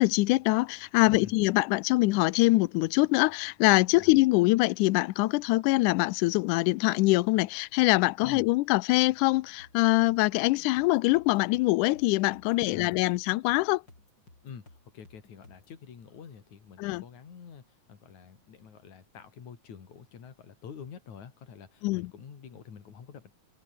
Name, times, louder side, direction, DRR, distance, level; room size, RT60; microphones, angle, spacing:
voice 1, 0.0-13.8 16.8-17.0 21.8-22.1, left 21 dB, 80° left, 2.0 m, -24 dB
voice 2, 1.0-1.3 3.9-4.1 8.2-8.5 12.7-13.0 14.4-23.3, left 7 dB, 60° left, 4.4 m, -47 dB
sound 1, 9.6-15.8, left 2 dB, 30° left, 8.6 m, -57 dB
omnidirectional pair, 3.8 m